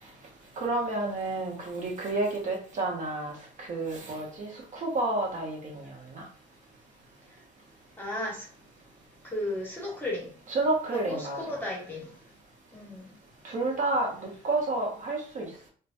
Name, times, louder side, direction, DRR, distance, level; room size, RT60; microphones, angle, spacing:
voice 1, 0.6-3.3 3.6-5.9 6.1-6.2 10.5-11.6 13.4-15.7, right 2 dB, 50° right, -1 dB, 0.9 m, -30 dB
voice 2, 8.0-8.4 9.3-10.3 10.9-12.1 12.7-13.1, left 1 dB, 10° left, -2 dB, 1.1 m, -34 dB
3.0 x 2.2 x 2.5 m, 0.43 s
cardioid pair, 110°, 17 cm